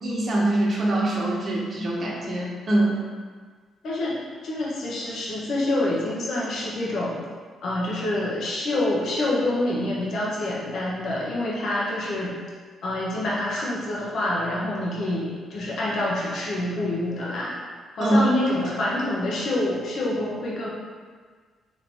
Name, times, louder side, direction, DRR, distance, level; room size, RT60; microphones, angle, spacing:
voice 1, 0.0-3.0 18.0-18.3 18.6-18.7, right 1 dB, 45° right, -4 dB, 1.1 m, -23 dB
voice 2, 3.8-7.2 7.6-12.3 12.8-17.5 18.0-20.7, left 1 dB, 65° left, -6 dB, 1.1 m, -27 dB
4.2 x 3.1 x 3.5 m, 1.6 s
cardioid pair, 90°, 0 cm